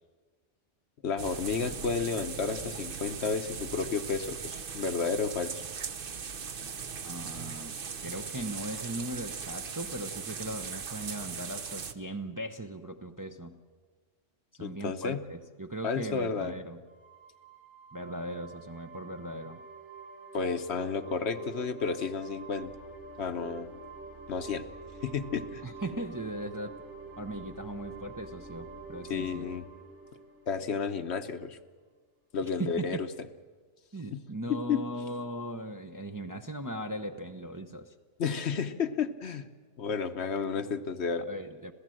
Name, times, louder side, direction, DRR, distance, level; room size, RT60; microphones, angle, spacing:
voice 1, 1.0-5.6 14.6-15.2 15.8-16.5 20.3-22.7 23.2-23.7 24.3-24.6 25.0-25.6 29.1-29.7 30.5-31.6 32.3-33.1 34.1-34.2 34.5-34.8 38.2-39.5 39.8-41.2, left 5 dB, 60° left, 9 dB, 1.1 m, -32 dB
sound 1, 1.2-11.9, right 6 dB, 50° right, 1.0 m, -39 dB
voice 2, 7.0-7.7 8.0-13.6 14.5-16.8 17.9-19.6 25.6-26.8 27.2-29.5 32.4-33.0 33.9-37.9 41.2-41.7, right 1 dB, 20° right, 5 dB, 0.7 m, -38 dB
sound 2, 16.9-31.3, right 4 dB, 65° right, 5.2 m, -47 dB
27.0 x 16.5 x 7.7 m, 1.5 s
omnidirectional pair, 1.3 m